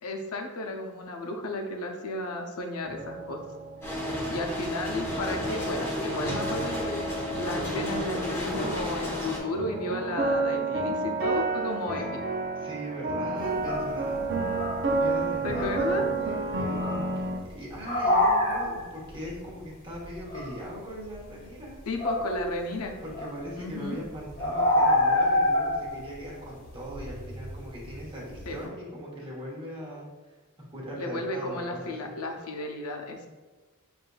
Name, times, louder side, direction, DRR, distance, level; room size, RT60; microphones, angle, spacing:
voice 1, 0.0-3.4 3.8-3.9 4.3-7.1 7.3-12.4 15.4-16.1 21.9-22.9 23.6-24.0 28.5-28.7 31.0-33.3, left 2 dB, 90° left, 3 dB, 0.6 m, -33 dB
sound 1, 2.8-17.4, right 3 dB, 50° right, 0.5 m, -31 dB
sound 2, 3.8-9.4, left 1 dB, 10° left, 0.7 m, -32 dB
voice 2, 3.8-4.3 11.9-12.1 12.5-21.8 23.0-30.1 30.7-32.1, equal, 25° right, -5 dB, 1.1 m, -40 dB
sound 3, 13.4-22.7 23.1-28.6, left 1 dB, 40° left, 1.1 m, -29 dB
6.4 x 2.6 x 2.3 m, 1.3 s
head